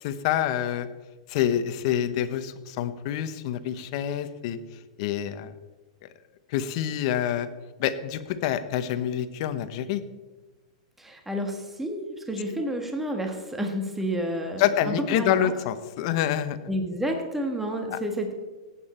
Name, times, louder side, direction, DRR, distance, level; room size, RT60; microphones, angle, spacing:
voice 1, 0.0-0.9 1.3-4.6 5.0-5.5 6.5-7.5 7.8-10.0 14.6-16.6 17.9-18.0, left 10 dB, 55° left, 12 dB, 1.0 m, -27 dB
voice 2, 11.0-15.5 16.7-18.3, equal, 5° right, 3 dB, 1.5 m, -30 dB
17.5 x 8.7 x 4.4 m, 1.3 s
hypercardioid pair, 135°, 4 cm